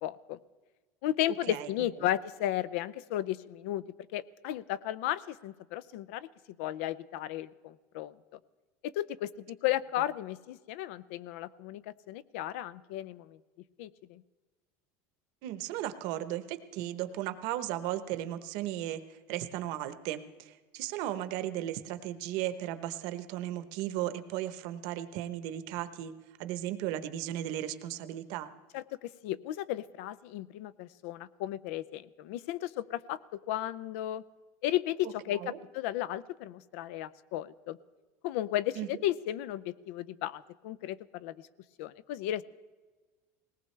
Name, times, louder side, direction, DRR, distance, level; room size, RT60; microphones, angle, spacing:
voice 1, 0.0-0.4 1.0-3.8 4.1-6.3 6.6-8.1 8.8-13.4 13.8-14.2 28.7-34.2 34.6-37.8 38.2-41.4 41.8-42.4, left 13 dB, 75° left, 19 dB, 0.5 m, -34 dB
voice 2, 15.4-26.1 26.4-28.5 35.4-35.6 38.8-39.0, right 13 dB, 60° right, 11 dB, 0.9 m, -36 dB
20.0 x 18.5 x 3.2 m, 1.3 s
cardioid pair, 160°, 7 cm